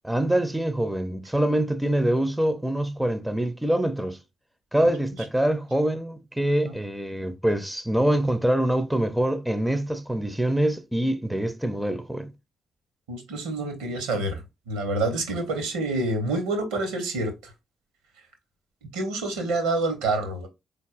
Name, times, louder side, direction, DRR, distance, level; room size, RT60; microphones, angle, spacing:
voice 1, 0.0-4.2 4.7-12.3, right 1 dB, 5° right, 0.6 m, -25 dB
voice 2, 13.1-17.3 18.9-20.5, right 2 dB, 70° right, 1.0 m, -27 dB
4.1 x 3.4 x 2.4 m
figure-of-eight pair, 40°, 0 cm